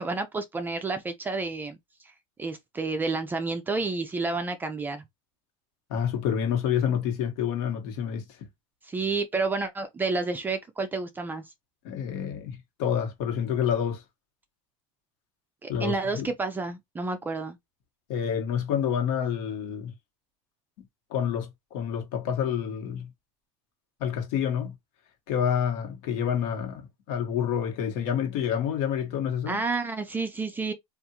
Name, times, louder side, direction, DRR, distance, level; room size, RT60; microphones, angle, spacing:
voice 1, 0.0-1.8 2.4-5.0 8.9-11.4 15.6-17.6 29.5-30.7, right 3 dB, 15° right, 0.4 m, -30 dB
voice 2, 5.9-8.2 11.8-14.0 15.7-16.3 18.1-19.9 20.8-23.1 24.0-24.7 25.3-29.6, left 8 dB, 65° left, 1.3 m, -28 dB
3.5 x 2.5 x 2.9 m
supercardioid pair, 150°, 15 cm